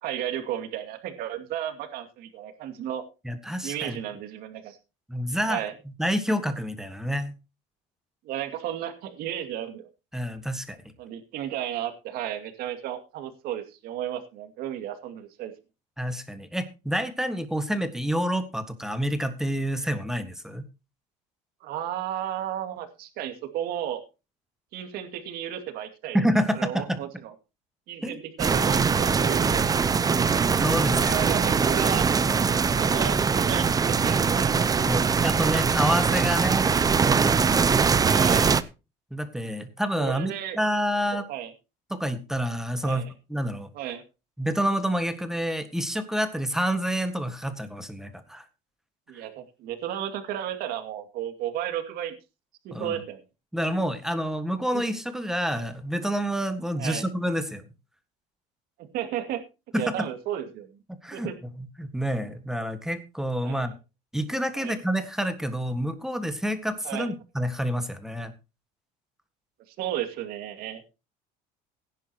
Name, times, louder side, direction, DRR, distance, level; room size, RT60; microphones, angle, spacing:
voice 1, 0.0-3.0 3.6-4.8 5.5-5.7 8.2-9.9 11.0-15.5 21.6-24.0 24.7-26.2 26.5-27.3 27.9-30.2 31.0-32.1 32.7-34.9 38.0-38.5 40.0-40.6 41.1-41.5 42.8-43.1 43.7-44.0 49.1-52.1 52.6-53.2 54.7-54.8 56.8-57.0 58.9-59.4 59.8-60.8 61.1-61.4 63.4-63.7 64.6-64.8 66.8-67.1 69.7-70.8, right 11 dB, 65° right, 7 dB, 2.4 m, -33 dB
voice 2, 3.2-4.0 5.1-5.6 6.0-7.3 10.1-10.8 16.0-20.6 26.1-27.0 28.0-28.2 30.6-31.2 34.8-36.7 39.1-41.3 41.9-43.7 44.4-48.5 49.1-49.2 52.7-53.0 53.5-57.6 59.7-60.1 61.0-61.3 61.6-63.7 64.1-68.3, equal, 5° right, 9 dB, 1.6 m, -28 dB
sound 1, 28.4-38.6, right 5 dB, 20° right, 0.7 m, -22 dB
16.5 x 10.5 x 2.9 m, 0.28 s
supercardioid pair, 110°, 17 cm